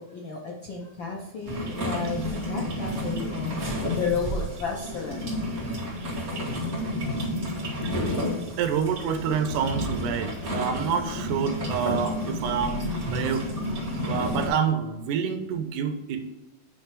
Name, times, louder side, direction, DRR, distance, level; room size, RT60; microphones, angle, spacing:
voice 1, 0.0-3.6 3.9-5.3, left 5 dB, 85° left, 0 dB, 1.0 m, -33 dB
sound 1, 1.4-14.5, equal, 30° right, 2.0 m, -30 dB
voice 2, 8.6-13.5 14.0-16.3, right 7 dB, 85° right, 8 dB, 2.3 m, -28 dB
8.5 x 3.3 x 4.6 m, 1.1 s
omnidirectional pair, 3.5 m